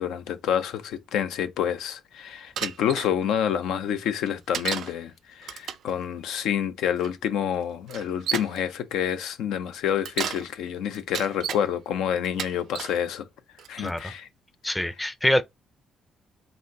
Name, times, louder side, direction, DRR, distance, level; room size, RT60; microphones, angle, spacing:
voice 1, 0.0-13.3 13.7-14.3, left 9 dB, 85° left, 0.5 m, -28 dB
Bicycle, 2.6-3.1 4.5-4.9 5.4-5.9 7.0-7.1 7.9-8.6 9.9-10.5 10.9-11.6 12.2-13.0 13.6-14.0, right 9 dB, 70° right, 0.4 m, -32 dB
voice 2, 13.8-14.1 14.6-15.4, left 1 dB, 10° left, 0.4 m, -25 dB
4.2 x 2.5 x 3.8 m
cardioid pair, 90°, 0 cm